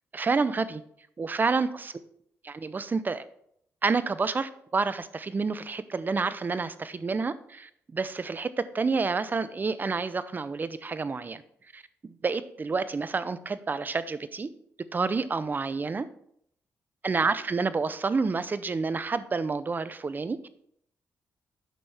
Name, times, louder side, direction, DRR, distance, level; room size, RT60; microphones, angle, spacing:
voice 1, 0.1-0.8 1.2-1.9 2.5-3.2 3.8-11.4 11.7-14.5 14.9-16.1 17.0-20.4, right 4 dB, 35° right, 14 dB, 0.6 m, -29 dB
9.1 x 6.1 x 3.4 m, 0.68 s
cardioid pair, 75°, 6 cm